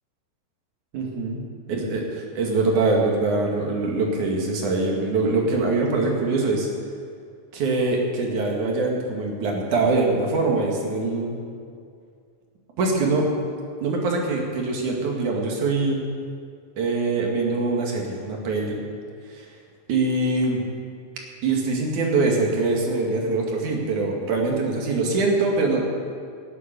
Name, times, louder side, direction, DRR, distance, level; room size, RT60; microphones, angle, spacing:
voice 1, 0.9-6.7 7.5-11.4 12.8-13.3 13.8-16.0 16.8-18.8 19.3-19.5 19.9-20.6 21.4-25.8, right 3 dB, 65° right, 0 dB, 3.4 m, -23 dB
18.0 x 8.5 x 6.7 m, 2.3 s
omnidirectional pair, 3.9 m